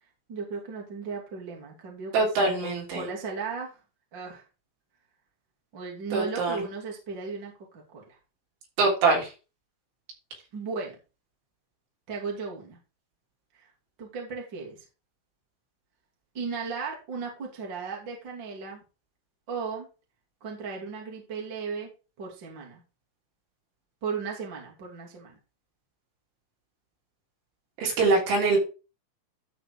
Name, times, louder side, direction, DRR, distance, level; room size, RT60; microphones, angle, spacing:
voice 1, 0.3-3.8 4.1-4.4 5.7-8.0 10.5-10.9 12.1-12.8 13.5-13.7 14.0-14.8 16.3-18.8 19.5-19.9 20.4-21.9 22.2-22.8 24.0-25.4, right 5 dB, 30° right, -2 dB, 2.4 m, -36 dB
voice 2, 2.1-3.1 6.1-6.6 8.8-9.3 27.8-28.6, right 3 dB, 65° right, -2 dB, 5.8 m, -23 dB
13.0 x 4.4 x 4.8 m, 0.32 s
omnidirectional pair, 5.9 m